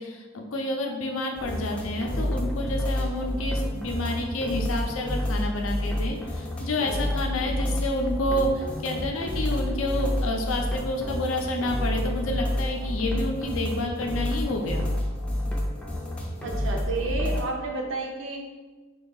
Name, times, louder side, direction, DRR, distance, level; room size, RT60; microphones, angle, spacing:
voice 1, 0.0-14.9, left 1 dB, 85° left, 2 dB, 0.5 m, -29 dB
sound 1, 1.4-17.4, left 1 dB, 5° left, 0.4 m, -29 dB
voice 2, 16.4-18.4, right 3 dB, 65° right, 1 dB, 0.6 m, -31 dB
3.0 x 2.7 x 3.9 m, 1.3 s
head